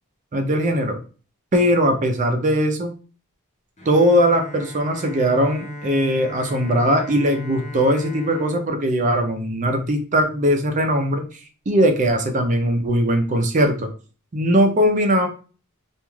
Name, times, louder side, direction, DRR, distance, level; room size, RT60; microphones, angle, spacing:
voice 1, 0.3-1.0 1.5-2.9 3.9-11.2 11.7-13.9 14.3-15.3, equal, 35° right, 5 dB, 0.5 m, -19 dB
Bowed string instrument, 3.8-9.8, left 1 dB, 30° left, 0.7 m, -38 dB
2.4 x 2.3 x 3.1 m, 0.37 s
head